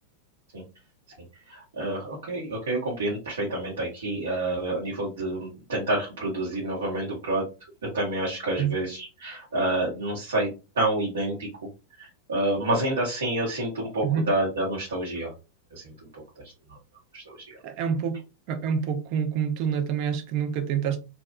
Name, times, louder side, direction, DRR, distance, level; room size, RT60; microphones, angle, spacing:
voice 1, 1.5-7.5 7.8-11.5 12.0-15.3 15.7-16.2 16.7-16.8 17.1-17.6, right 1 dB, 65° right, 0.9 m, -28 dB
voice 2, 17.6-18.2 18.5-21.0, right 7 dB, 45° right, 0.5 m, -27 dB
2.7 x 2.2 x 2.3 m
figure-of-eight pair, 90°, 0 cm